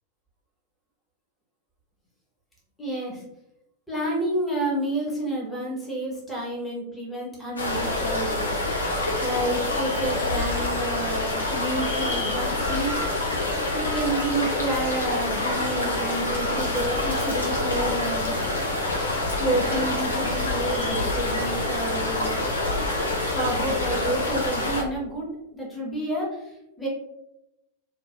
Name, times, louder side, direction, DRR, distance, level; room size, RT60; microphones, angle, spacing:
voice 1, 2.8-3.2 3.9-8.6 9.2-13.0 13.7-18.4 19.4-22.4 23.3-26.9, right 1 dB, 5° left, -4 dB, 1.0 m, -30 dB
sound 1, 7.6-24.8, left 2 dB, 75° left, 0.6 m, -27 dB
sound 2, 8.9-24.4, left 1 dB, 40° left, 0.9 m, -38 dB
3.1 x 2.2 x 2.4 m, 0.87 s
figure-of-eight pair, 90°, 0 cm